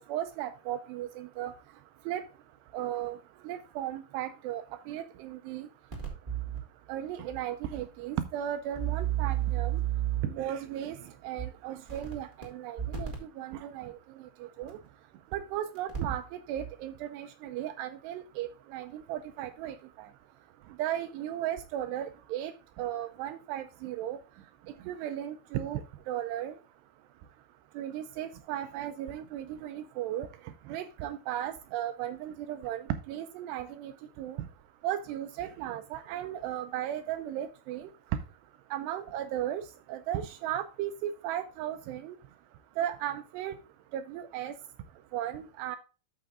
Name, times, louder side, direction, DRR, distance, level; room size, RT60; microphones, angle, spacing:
voice 1, 0.0-1.5 2.1-2.2 2.7-3.2 3.4-5.7 6.9-9.8 10.2-11.0 11.2-13.9 14.6-14.8 15.3-20.1 20.8-22.5 22.8-24.2 24.9-25.8 26.1-26.5 27.8-30.3 30.7-33.9 34.2-34.5 34.8-37.9 38.7-39.6 39.9-42.2 42.8-43.6 43.9-44.5 45.1-45.8, right 11 dB, 80° right, 10 dB, 2.5 m, -35 dB
sound 1, 5.9-6.6 7.3-7.4 7.7-7.8 8.7-10.4 11.4-11.5 11.9-12.4 12.8-13.2 14.7-14.8 15.8-16.2 16.6-16.7, right 11 dB, 35° right, 0.7 m, -31 dB
13.0 x 5.9 x 2.4 m, 0.33 s
omnidirectional pair, 5.3 m